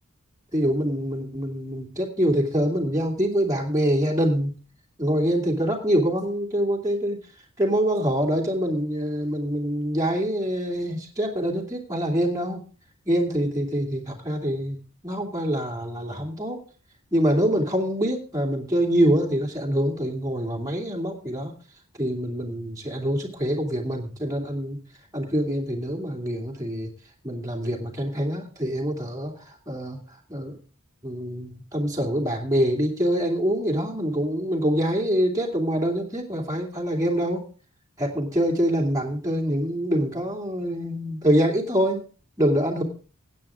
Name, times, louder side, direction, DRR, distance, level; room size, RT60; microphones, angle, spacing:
voice 1, 0.5-4.5 5.0-7.2 7.6-12.6 13.1-16.6 17.1-21.5 22.0-24.8 25.1-26.9 27.2-30.0 30.3-30.5 31.0-37.5 38.0-42.1 42.4-42.8, equal, 15° right, -1 dB, 2.7 m, -25 dB
16.0 x 9.1 x 3.7 m, 0.37 s
head